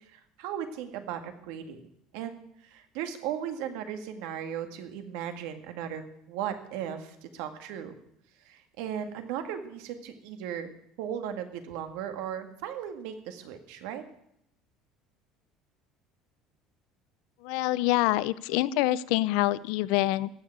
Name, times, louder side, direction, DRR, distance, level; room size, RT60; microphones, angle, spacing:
voice 1, 0.0-1.8 2.1-2.4 2.6-7.9 8.5-10.7 11.0-14.0, right 9 dB, 80° right, 7 dB, 1.9 m, -36 dB
voice 2, 17.4-20.3, left 17 dB, 75° left, 18 dB, 0.5 m, -26 dB
15.5 x 6.8 x 9.2 m, 0.74 s
cardioid pair, 170°, 0 cm